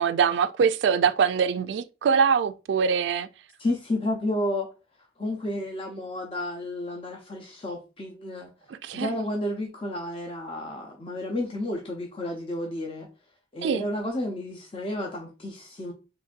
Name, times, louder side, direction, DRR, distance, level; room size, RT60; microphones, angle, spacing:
voice 1, 0.0-3.3 8.7-9.1 13.6-13.8, right 6 dB, 80° right, 0.3 m, -23 dB
voice 2, 3.6-4.7 5.2-8.5 8.9-13.1 13.5-15.9, left 1 dB, 30° left, 0.5 m, -31 dB
3.9 x 3.0 x 2.5 m
head